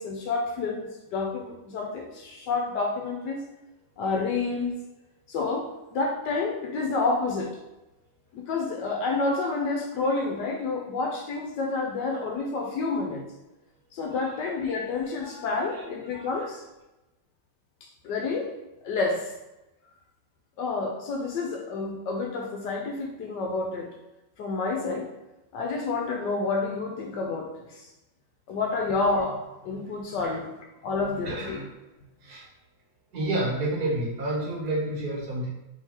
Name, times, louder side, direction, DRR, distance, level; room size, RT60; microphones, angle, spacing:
voice 1, 0.0-3.4 4.0-4.7 5.3-7.6 8.3-13.2 13.9-16.6 17.8-18.5 18.8-19.3 20.6-23.9 24.4-25.1 25.5-27.9 28.5-30.5 30.8-31.7, left 3 dB, 70° left, 1 dB, 1.2 m, -29 dB
voice 2, 14.1-14.4 14.6-14.7 15.2-15.8 16.1-16.5 30.2-30.3 31.2-31.7 32.2-32.4 33.1-35.5, right 1 dB, 55° right, -4 dB, 1.5 m, -30 dB
3.8 x 3.2 x 4.2 m, 1.0 s
omnidirectional pair, 2.1 m